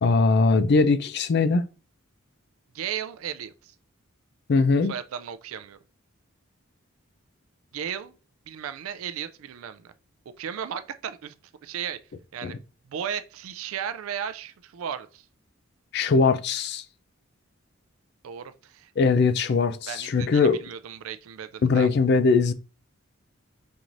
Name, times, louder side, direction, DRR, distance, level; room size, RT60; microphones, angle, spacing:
voice 1, 0.0-1.6 4.5-4.9 12.4-12.5 15.9-16.8 19.0-20.6 21.6-22.5, left 4 dB, 50° left, 0.4 m, -21 dB
voice 2, 2.7-3.7 4.9-5.8 7.7-8.1 8.5-9.9 10.4-11.3 11.6-12.0 12.3-12.5 12.9-15.2 18.2-18.9 19.9-21.9, right 8 dB, 85° right, 0.4 m, -35 dB
5.3 x 3.0 x 2.5 m
head